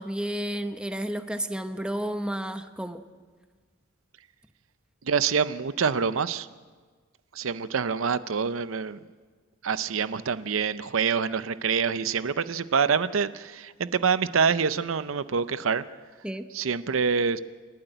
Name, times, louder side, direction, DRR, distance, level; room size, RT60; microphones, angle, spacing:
voice 1, 0.0-3.0 16.2-16.5, right 1 dB, 5° right, 8 dB, 0.8 m, -31 dB
voice 2, 5.0-6.5 7.3-9.0 9.6-15.8 16.5-17.4, right 6 dB, 75° right, 14 dB, 0.6 m, -26 dB
28.0 x 12.0 x 9.0 m, 1.5 s
head